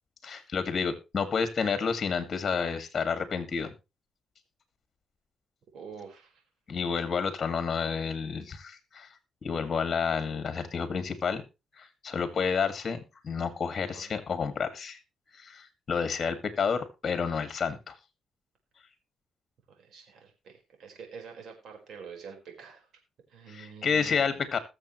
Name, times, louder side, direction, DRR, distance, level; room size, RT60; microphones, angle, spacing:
voice 1, 0.2-3.7 6.7-9.1 9.4-11.4 11.8-15.0 15.3-17.9 23.5-24.6, left 6 dB, 40° left, 9 dB, 2.1 m, -30 dB
voice 2, 5.7-6.4 13.7-14.2 19.7-22.9 23.3-24.4, right 6 dB, 65° right, 3 dB, 4.7 m, -47 dB
20.5 x 7.2 x 3.2 m, 0.27 s
cardioid pair, 90°, 0 cm